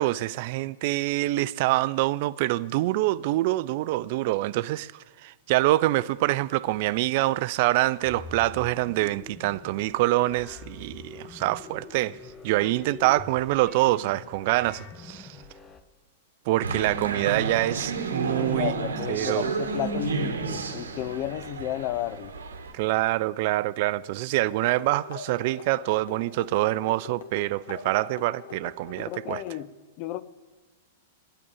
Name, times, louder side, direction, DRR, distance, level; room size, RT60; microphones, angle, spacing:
voice 1, 0.0-4.9 5.2-12.2 12.4-15.4 16.5-18.7 19.1-19.5 22.7-29.4, right 17 dB, 50° right, 0.3 m, -25 dB
sound 1, 8.0-15.8, left 4 dB, 25° left, 0.9 m, -45 dB
sound 2, 16.6-22.7, right 4 dB, 75° right, 1.0 m, -31 dB
voice 2, 18.4-22.3 29.0-29.7 30.0-30.2, left 13 dB, 45° left, 0.5 m, -33 dB
sound 3, 24.5-29.6, left 5 dB, 65° left, 1.0 m, -44 dB
8.9 x 8.4 x 8.5 m
figure-of-eight pair, 100°, 0 cm